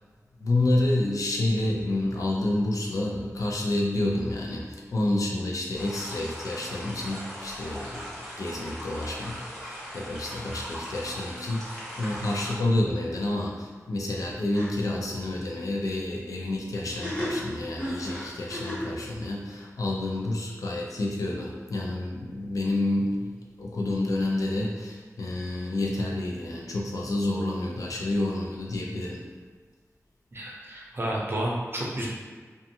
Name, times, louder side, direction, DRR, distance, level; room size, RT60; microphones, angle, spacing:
voice 1, 0.4-4.7 4.9-23.3 23.6-29.2, left 1 dB, 85° left, -2 dB, 0.5 m, -29 dB
sound 1, 5.7-12.5, equal, ahead, 0.9 m, -40 dB
sound 2, 14.1-14.3 14.5-14.7 16.8-19.0, equal, 35° left, 1.4 m, -33 dB
voice 2, 30.3-32.1, right 1 dB, 45° right, -3 dB, 0.6 m, -31 dB
2.5 x 2.3 x 2.7 m, 1.5 s
wide cardioid pair, 90°, 6 cm